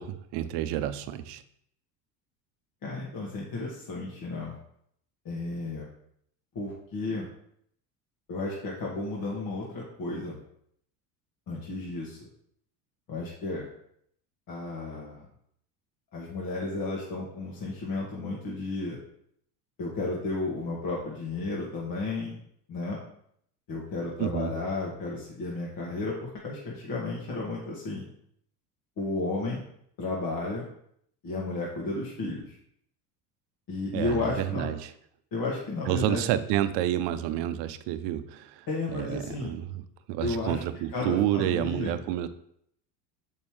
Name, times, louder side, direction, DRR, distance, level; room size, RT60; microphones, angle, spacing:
voice 1, 0.0-1.4 24.2-24.5 33.9-34.9 35.9-38.7 38.9-39.8 40.1-42.3, right 12 dB, 55° right, 12 dB, 0.7 m, -29 dB
voice 2, 2.8-4.6 5.2-5.9 6.5-7.3 8.3-10.4 11.5-12.3 13.1-13.7 14.5-15.2 16.1-19.0 19.8-22.4 22.7-23.0 23.7-28.0 29.0-29.6 30.0-30.6 31.2-32.6 33.7-34.7 35.3-36.3 38.7-39.6 40.2-40.6 40.9-42.0, left 2 dB, 40° left, -3 dB, 1.6 m, -33 dB
6.9 x 5.4 x 3.2 m, 0.70 s
hypercardioid pair, 75°, 50 cm